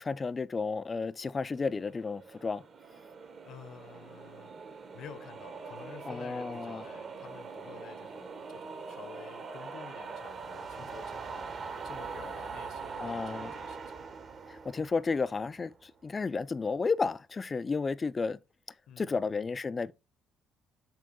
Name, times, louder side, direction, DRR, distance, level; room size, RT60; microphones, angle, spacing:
voice 1, 0.0-2.6 6.1-6.8 13.0-13.5 14.5-18.4 19.0-19.9, left 4 dB, 30° left, 0.4 m, -32 dB
sound 1, 1.5-15.8, right 5 dB, 50° right, 1.2 m, -43 dB
voice 2, 3.4-11.5 11.8-13.9 18.9-19.5, left 8 dB, 70° left, 0.9 m, -50 dB
7.5 x 2.5 x 5.3 m
supercardioid pair, 75°, 0 cm